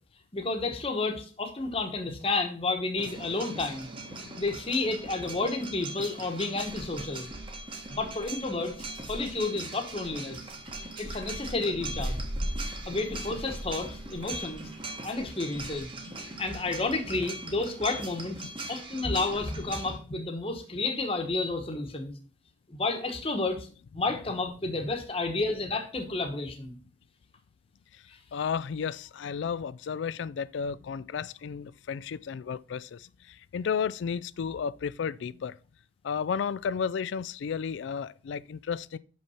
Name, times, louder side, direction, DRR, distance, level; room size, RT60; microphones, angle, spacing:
voice 1, 0.3-3.9 4.4-7.3 7.9-10.4 11.0-12.2 12.9-14.7 15.0-15.9 16.2-22.1 22.7-23.7 23.9-26.7 28.1-28.2, left 3 dB, 30° left, 1.1 m, -31 dB
sound 1, 3.0-20.0, right 2 dB, 25° right, 1.1 m, -39 dB
voice 2, 28.3-35.6 36.0-39.0, left 6 dB, 70° left, 0.3 m, -33 dB
5.9 x 5.5 x 5.6 m
head